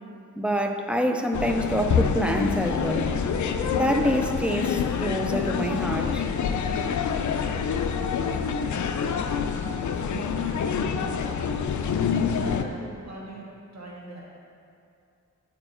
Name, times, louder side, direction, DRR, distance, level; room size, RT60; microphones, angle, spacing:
voice 1, 0.4-3.1 3.7-6.2, equal, 5° right, 4 dB, 0.4 m, -26 dB
sound 1, 1.3-12.6, left 6 dB, 65° left, 0.5 m, -26 dB
voice 2, 9.7-10.9 12.4-14.3, right 2 dB, 55° right, -4 dB, 1.1 m, -41 dB
9.0 x 4.4 x 4.3 m, 2.5 s
wide cardioid pair, 100°, 31 cm